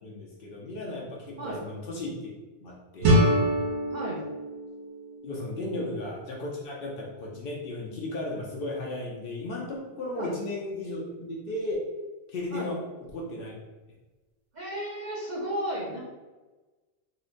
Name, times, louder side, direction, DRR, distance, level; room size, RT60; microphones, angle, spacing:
voice 1, 0.0-2.3 2.6-3.4 5.2-11.9 12.3-12.8 13.1-13.5, left 2 dB, 60° left, -3 dB, 0.7 m, -35 dB
sound 1, 3.0-5.9, right 1 dB, 80° right, 1.0 m, -25 dB
voice 2, 3.9-4.2 5.7-5.9 10.1-10.3 12.5-12.7 14.5-16.1, right 1 dB, 50° right, -5 dB, 0.6 m, -34 dB
3.6 x 2.1 x 2.5 m, 1.2 s
omnidirectional pair, 1.2 m